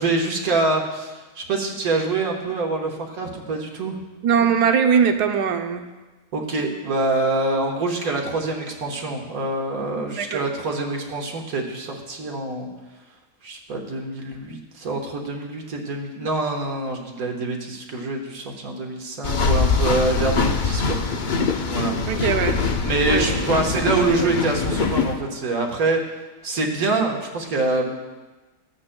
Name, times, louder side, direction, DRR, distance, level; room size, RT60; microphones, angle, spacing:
voice 1, 0.0-4.0 6.3-12.7 13.4-21.0 21.7-21.9 22.8-26.0 26.4-27.9, right 2 dB, 65° right, 1 dB, 1.6 m, -25 dB
voice 2, 4.2-5.8 10.1-10.5 22.1-22.6 23.1-23.6, right 7 dB, 90° right, 6 dB, 1.3 m, -21 dB
sound 1, 19.2-25.1, left 4 dB, 60° left, 0.5 m, -23 dB
15.0 x 8.6 x 2.2 m, 1.2 s
omnidirectional pair, 1.7 m